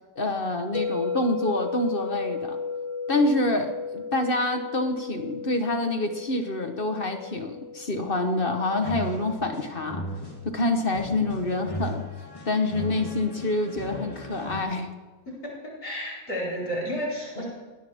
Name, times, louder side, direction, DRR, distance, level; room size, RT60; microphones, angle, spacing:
voice 1, 0.2-2.6 3.1-10.0 10.4-12.0 12.4-14.9 17.4-17.5, left 2 dB, 35° left, 5 dB, 1.5 m, -27 dB
sound 1, 0.7-10.8, left 4 dB, 20° right, 0.4 m, -35 dB
sound 2, 8.8-14.6, equal, 20° left, 3.8 m, -37 dB
voice 2, 15.8-17.4, equal, 70° left, -5 dB, 5.3 m, -31 dB
20.5 x 19.0 x 3.7 m, 1.3 s
omnidirectional pair, 1.7 m